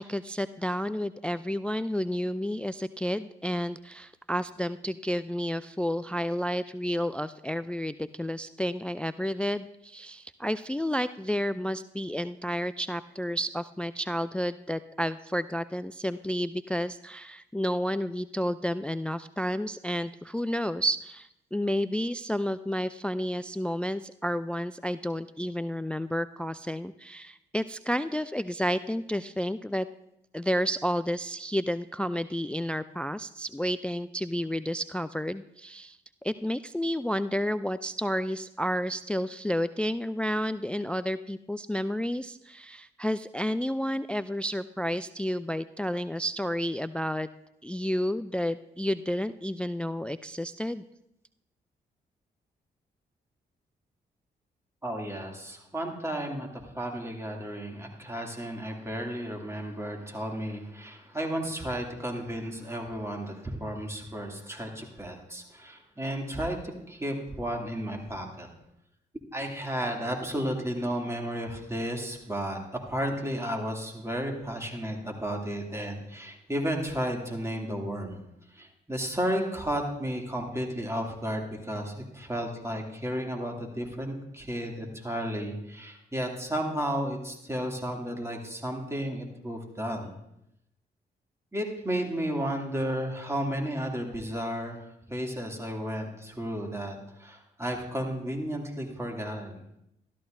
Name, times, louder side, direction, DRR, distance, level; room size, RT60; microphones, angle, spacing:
voice 1, 0.0-29.9 30.3-36.0 36.2-47.3 47.6-50.8, equal, 5° left, 15 dB, 0.3 m, -31 dB
voice 2, 54.8-56.5 56.7-68.5 69.3-78.2 78.5-90.1 91.5-99.6, equal, 15° right, 0 dB, 2.6 m, -33 dB
13.0 x 12.5 x 2.6 m, 0.80 s
hypercardioid pair, 40°, 21 cm